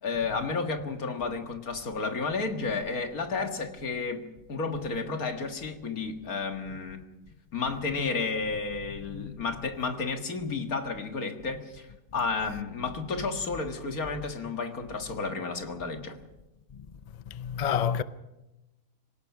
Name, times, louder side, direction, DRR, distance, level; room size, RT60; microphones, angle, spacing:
voice 1, 0.0-4.2 4.5-7.0 7.5-11.9 12.1-16.2, left 4 dB, 65° left, 2.2 m, -32 dB
voice 2, 17.3-18.0, left 8 dB, 45° left, 0.5 m, -28 dB
26.0 x 17.5 x 6.0 m
omnidirectional pair, 1.7 m